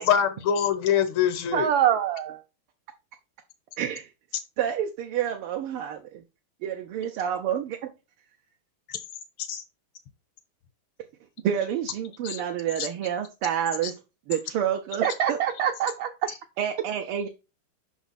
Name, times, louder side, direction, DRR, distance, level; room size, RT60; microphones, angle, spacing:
voice 1, 0.0-1.7 8.9-9.0 9.5-9.6 12.2-12.4, left 9 dB, 75° left, 1.9 m, -24 dB
voice 2, 1.5-2.4 15.0-16.1, right 10 dB, 75° right, 1.4 m, -24 dB
voice 3, 3.8-4.1 4.6-6.2 6.6-7.9 11.4-14.0 14.3-15.4 16.6-17.3, right 9 dB, 90° right, 1.7 m, -29 dB
6.0 x 4.6 x 4.1 m
omnidirectional pair, 2.4 m